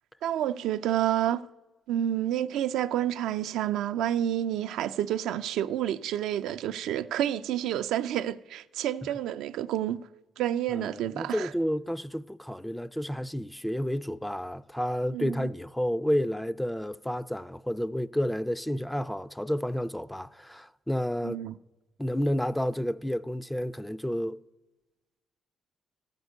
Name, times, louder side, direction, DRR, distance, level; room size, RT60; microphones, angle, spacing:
voice 1, 0.2-1.4 1.9-10.0 10.4-11.5 15.1-15.5 21.2-21.6, right 11 dB, 85° right, 0.3 m, -29 dB
voice 2, 10.7-21.4 22.0-24.4, equal, 5° left, 0.3 m, -30 dB
14.0 x 5.3 x 8.0 m
cardioid pair, 90°, 0 cm